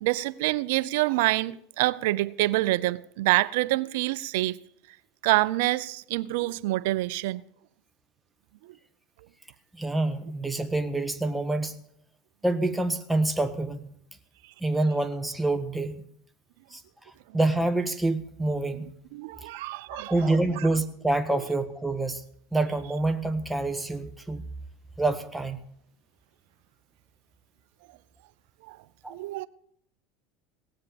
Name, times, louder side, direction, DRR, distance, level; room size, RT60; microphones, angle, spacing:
voice 1, 0.0-4.6 5.2-7.4 19.1-20.1 28.7-28.8 29.1-29.5, right 18 dB, 75° right, 0.6 m, -26 dB
voice 2, 9.7-11.8 12.4-13.9 14.6-16.0 16.7-18.9 19.9-22.2 22.5-24.4 25.0-25.6 29.0-29.2, right 2 dB, 5° right, 1.4 m, -27 dB
17.5 x 7.8 x 7.1 m
supercardioid pair, 100°, 0 cm